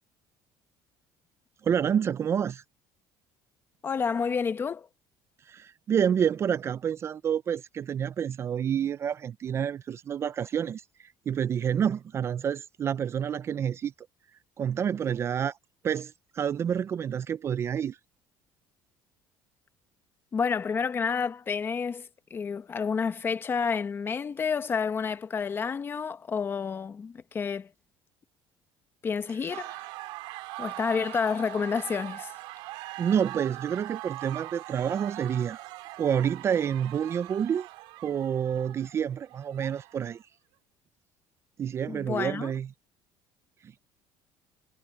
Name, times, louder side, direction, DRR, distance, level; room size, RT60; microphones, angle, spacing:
voice 1, 1.6-2.6 5.5-13.9 14.6-15.6 15.8-18.0 33.0-35.6 36.0-37.7 38.0-40.2 41.6-42.7 43.6-43.7, right 8 dB, 30° right, 0.4 m, -28 dB
voice 2, 3.8-4.9 20.3-27.7 29.0-29.8 30.6-32.4 41.9-42.5, left 6 dB, 25° left, 1.0 m, -29 dB
sound 1, 29.5-40.2, right 20 dB, 85° right, 2.4 m, -41 dB
cardioid pair, 145°, 9 cm